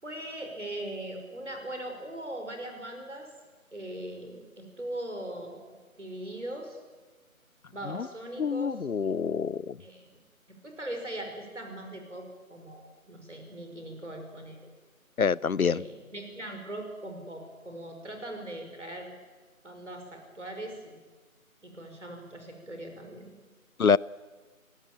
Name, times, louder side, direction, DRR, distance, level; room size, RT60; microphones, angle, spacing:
voice 1, 0.0-3.3 3.7-6.8 7.7-8.9 9.8-10.2 10.5-12.2 12.5-14.7 15.7-19.1 19.6-21.0 21.6-23.4, right 1 dB, 55° right, 5.6 m, -40 dB
voice 2, 8.4-9.7 15.2-15.8 23.8-24.0, left 6 dB, 75° left, 0.6 m, -25 dB
22.5 x 18.0 x 8.8 m
figure-of-eight pair, 170°, 43 cm